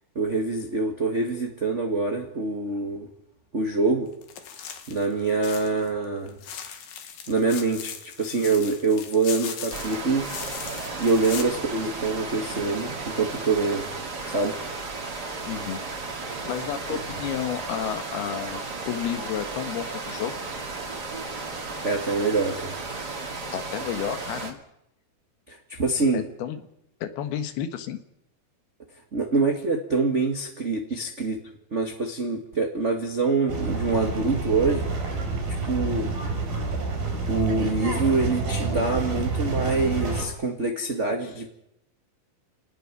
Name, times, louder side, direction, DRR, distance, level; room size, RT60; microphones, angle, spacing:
voice 1, 0.1-3.1 3.5-4.1 4.9-6.4 7.3-10.3 11.0-13.9 14.3-14.5 16.9-17.0 21.8-22.7 25.5-26.2 29.1-31.4 31.7-34.9 35.7-36.1 37.3-41.5, right 3 dB, 55° right, 3 dB, 0.8 m, -25 dB
sound 1, 4.2-5.9 6.3-11.4, left 8 dB, 65° left, 3.2 m, -38 dB
sound 2, 9.7-24.5, right 3 dB, 30° right, 2.4 m, -34 dB
voice 2, 15.5-15.8 16.4-20.4 23.5-24.6 26.1-26.6 27.0-28.0 30.9-31.0, left 9 dB, 85° left, 9 dB, 3.3 m, -31 dB
sound 3, 33.5-40.3, right 3 dB, 70° right, 6.7 m, -28 dB
27.5 x 19.0 x 6.1 m, 0.79 s
omnidirectional pair, 4.4 m